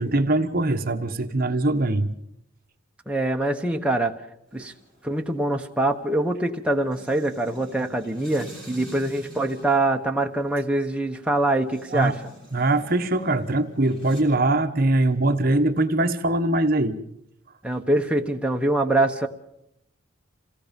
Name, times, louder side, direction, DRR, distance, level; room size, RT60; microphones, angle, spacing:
voice 1, 0.0-2.1 11.9-12.2 12.5-17.0, right 2 dB, 45° right, 6 dB, 1.2 m, -22 dB
voice 2, 3.1-4.1 4.5-4.7 5.0-12.2 17.6-19.3, right 2 dB, 5° right, 2 dB, 1.2 m, -24 dB
sound 1, 4.5-14.2, equal, 25° left, 6.0 m, -47 dB
27.5 x 17.5 x 5.3 m, 0.77 s
head